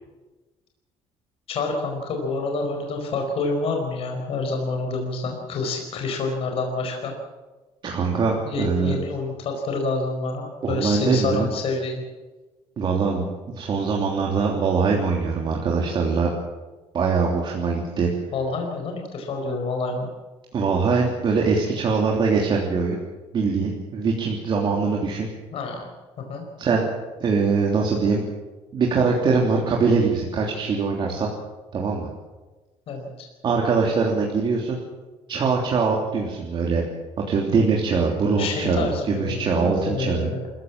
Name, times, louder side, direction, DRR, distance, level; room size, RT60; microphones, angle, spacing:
voice 1, 1.5-7.1 8.5-12.0 18.3-20.1 25.5-25.9 26.2-26.4 32.9-33.3 38.4-40.4, left 3 dB, 55° left, 2 dB, 4.9 m, -28 dB
voice 2, 7.8-9.0 10.6-11.5 12.8-13.3 13.5-16.3 16.9-18.1 20.5-23.0 23.3-25.3 26.6-26.8 27.2-28.2 28.7-31.3 31.7-32.1 33.4-34.8 35.3-36.8 37.3-40.3, right 4 dB, 45° right, -1 dB, 3.2 m, -22 dB
26.0 x 15.5 x 7.5 m, 1.2 s
cardioid pair, 135°, 12 cm